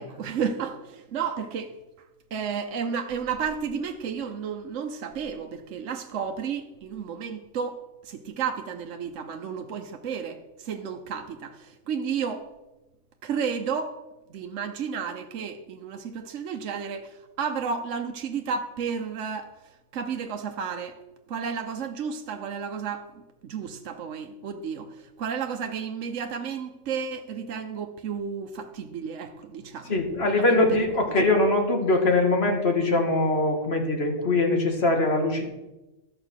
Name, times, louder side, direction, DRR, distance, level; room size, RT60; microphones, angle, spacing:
voice 1, 0.0-1.8 2.3-12.5 13.2-14.0 14.3-19.5 19.9-21.0 21.3-23.1 23.4-30.7 31.0-31.1, right 6 dB, 70° right, 5 dB, 1.1 m, -32 dB
voice 2, 29.9-35.4, left 2 dB, 50° left, 3 dB, 2.1 m, -22 dB
13.0 x 6.6 x 6.4 m, 1.0 s
omnidirectional pair, 1.4 m